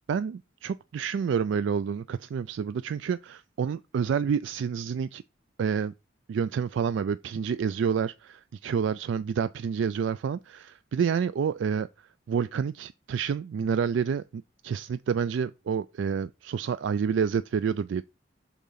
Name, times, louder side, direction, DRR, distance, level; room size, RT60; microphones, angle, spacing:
voice 1, 0.1-5.2 5.6-5.9 6.3-11.9 12.3-18.0, right 6 dB, 65° right, 0.3 m, -28 dB
6.9 x 3.7 x 5.6 m
head